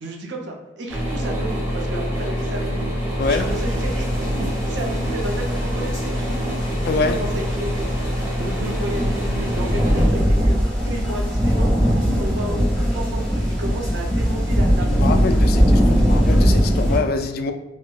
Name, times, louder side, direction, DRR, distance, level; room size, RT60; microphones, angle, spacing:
voice 1, 0.0-4.1 4.3-6.6 6.9-7.9 8.4-11.7 12.0-15.4, right 1 dB, 75° right, 1 dB, 0.6 m, -32 dB
sound 1, 0.9-10.1, equal, 10° right, 0.8 m, -25 dB
sound 2, 3.2-17.0, equal, 5° left, 1.5 m, -21 dB
voice 2, 6.9-7.2 14.8-17.5, left 3 dB, 55° left, 7 dB, 0.3 m, -24 dB
4.3 x 2.1 x 2.3 m, 1.0 s
head